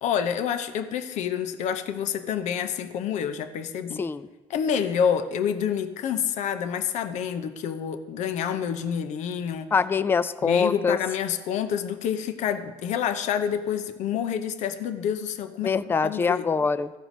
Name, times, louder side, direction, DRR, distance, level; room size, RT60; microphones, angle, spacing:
voice 1, 0.0-4.0 4.5-9.7 10.4-15.8 16.0-16.4, left 8 dB, 60° left, 9 dB, 0.8 m, -28 dB
voice 2, 9.7-11.0 15.6-17.0, left 5 dB, 15° left, 15 dB, 0.4 m, -24 dB
14.5 x 4.8 x 5.1 m, 1.2 s
supercardioid pair, 85°, 14 cm